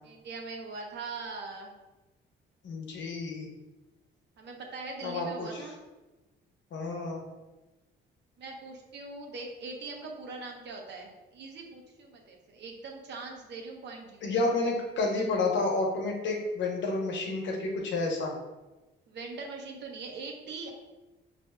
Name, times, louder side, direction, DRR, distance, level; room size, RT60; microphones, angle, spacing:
voice 1, 0.0-1.7 4.4-5.7 8.4-14.2 19.1-20.7, right 3 dB, 60° right, 1 dB, 0.8 m, -41 dB
voice 2, 2.6-3.5 5.0-5.5 6.7-7.3 14.2-18.3, left 3 dB, 65° left, 0 dB, 0.9 m, -30 dB
5.1 x 2.6 x 2.2 m, 1.1 s
cardioid pair, 90°, 20 cm